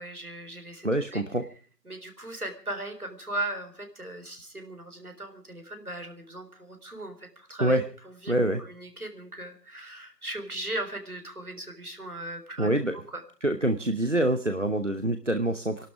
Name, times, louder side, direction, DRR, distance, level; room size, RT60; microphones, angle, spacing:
voice 1, 0.0-1.2 1.9-7.8 8.0-13.2, right 1 dB, 65° right, 6 dB, 4.0 m, -38 dB
voice 2, 0.8-1.4 7.6-7.8 8.3-8.6 12.6-13.0 13.4-15.9, right 1 dB, 50° right, 8 dB, 1.0 m, -25 dB
23.5 x 12.0 x 4.9 m, 0.42 s
figure-of-eight pair, 180°, 48 cm